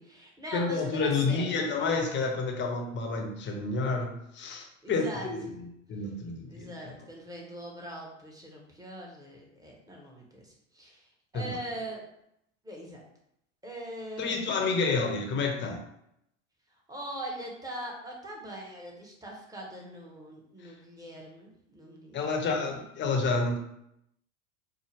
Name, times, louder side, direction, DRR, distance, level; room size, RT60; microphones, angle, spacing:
voice 1, 0.0-1.8 4.8-5.6 6.5-12.1 12.6-13.0 13.6-15.0 16.9-22.9, right 1 dB, 10° right, -2 dB, 1.1 m, -42 dB
voice 2, 0.5-5.5 5.9-6.7 11.3-11.6 14.2-15.8 20.6-20.7 22.1-23.6, left 4 dB, 30° left, 2 dB, 0.8 m, -29 dB
4.5 x 2.1 x 3.3 m, 0.77 s
hypercardioid pair, 90°, 38 cm